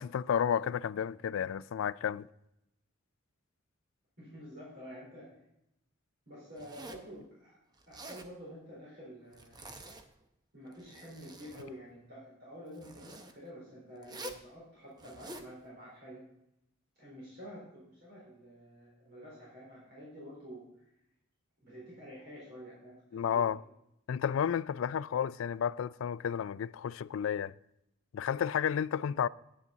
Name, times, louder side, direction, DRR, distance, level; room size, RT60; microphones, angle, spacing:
voice 1, 0.0-2.3 23.1-23.6 24.1-27.5 28.1-29.3, left 8 dB, 70° left, 0.3 m, -32 dB
voice 2, 4.2-5.4 6.3-7.6 7.9-9.6 10.5-16.2 17.0-20.6 21.6-23.0 23.3-23.5, equal, 50° right, 4.0 m, -49 dB
Zipper (clothing), 6.6-7.1 7.8-8.3 9.3-10.2 10.7-11.7 12.7-13.3 14.0-14.5 15.0-15.5, right 1 dB, 20° right, 0.7 m, -47 dB
9.8 x 9.4 x 3.9 m
head